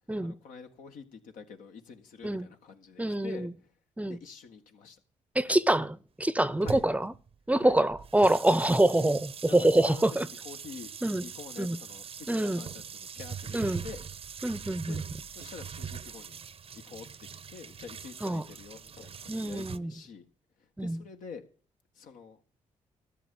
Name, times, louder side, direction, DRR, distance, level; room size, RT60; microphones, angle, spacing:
voice 1, 0.2-3.5 4.1-5.0 6.6-6.9 7.5-7.8 9.5-10.9 11.2-13.6 13.8-14.1 14.9-15.0 15.3-16.4 16.7-20.3 20.8-21.5 22.0-22.4, left 6 dB, 80° left, 1.7 m, -46 dB
voice 2, 3.0-3.5 4.0-4.2 5.3-7.1 7.5-10.3 11.0-11.2 11.6-11.8 12.3-12.6 13.5-13.8 14.4-15.0 18.2-18.4 19.3-19.9 20.8-21.0, right 1 dB, 10° right, 0.7 m, -26 dB
sound 1, 6.6-19.8, right 7 dB, 45° right, 0.7 m, -42 dB
13.5 x 7.1 x 7.1 m
supercardioid pair, 65°, 13 cm